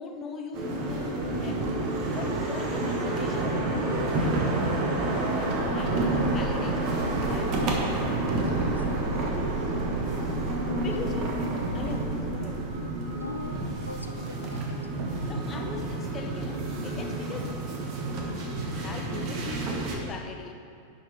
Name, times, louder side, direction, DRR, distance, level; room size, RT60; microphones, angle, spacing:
voice 1, 0.0-1.7 2.1-4.4 4.8-7.6 10.5-11.4 11.7-12.6 15.3-17.9 18.3-20.5, left 5 dB, 25° left, 5 dB, 0.8 m, -40 dB
sound 1, 0.5-20.0, right 2 dB, 40° right, 1.3 m, -29 dB
sound 2, 5.4-13.9, right 2 dB, 75° right, 0.7 m, -37 dB
voice 2, 8.5-9.4 10.9-11.1 11.8-12.1 13.1-15.1, left 3 dB, 80° left, 5 dB, 0.4 m, -42 dB
10.5 x 5.7 x 4.6 m, 2.3 s
figure-of-eight pair, 90°, 0 cm